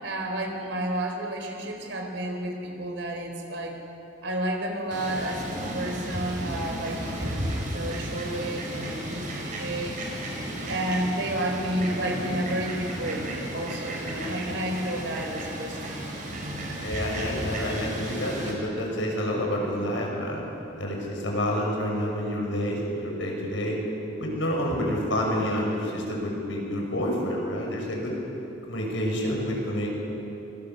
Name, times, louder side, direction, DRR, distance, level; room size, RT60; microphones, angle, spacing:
voice 1, 0.0-3.8 4.2-5.4 5.7-10.0 10.7-16.0, right 1 dB, 70° right, 2 dB, 4.3 m, -31 dB
Fowl, 4.9-18.5, right 1 dB, 40° right, 5.0 m, -33 dB
voice 2, 16.8-20.4 20.8-23.8 24.2-28.1 28.7-29.9, equal, 80° left, -1 dB, 6.3 m, -28 dB
25.0 x 22.0 x 7.0 m, 2.9 s
head